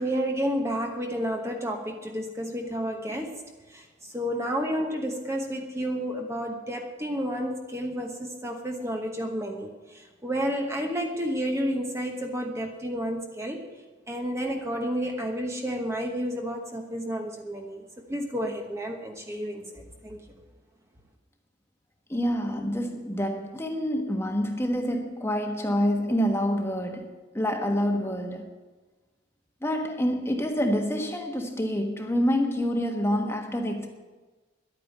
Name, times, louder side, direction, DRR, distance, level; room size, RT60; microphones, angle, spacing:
voice 1, 0.0-13.6 14.1-20.2, equal, 15° right, 1.1 m, -31 dB
voice 2, 22.1-28.5 29.6-33.9, equal, 15° left, 1.3 m, -27 dB
11.5 x 9.0 x 9.2 m
head